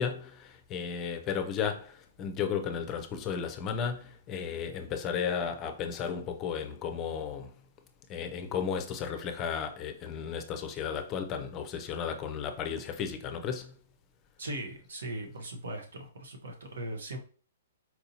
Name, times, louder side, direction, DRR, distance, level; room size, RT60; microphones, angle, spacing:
voice 1, 0.0-7.5 8.1-13.7, left 7 dB, 25° left, 0.4 m, -34 dB
voice 2, 14.4-17.2, right 1 dB, 85° right, 0.9 m, -39 dB
4.3 x 2.7 x 2.8 m
hypercardioid pair, 155°, 0 cm